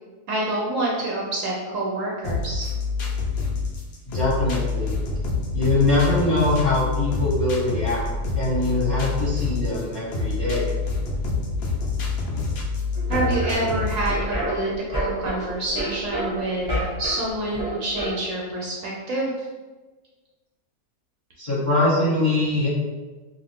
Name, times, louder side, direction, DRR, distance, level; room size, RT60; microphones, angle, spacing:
voice 1, 0.3-2.7 12.0-12.2 13.1-19.5, right 2 dB, 70° right, -3 dB, 0.8 m, -27 dB
sound 1, 2.2-14.3, left 3 dB, 85° left, 0.5 m, -27 dB
voice 2, 4.1-4.9 5.5-8.0 8.3-10.7 21.4-22.7, left 2 dB, 40° left, -10 dB, 0.7 m, -22 dB
sound 2, 12.9-18.1, equal, 5° right, 0.9 m, -30 dB
2.5 x 2.4 x 3.3 m, 1.3 s
omnidirectional pair, 1.7 m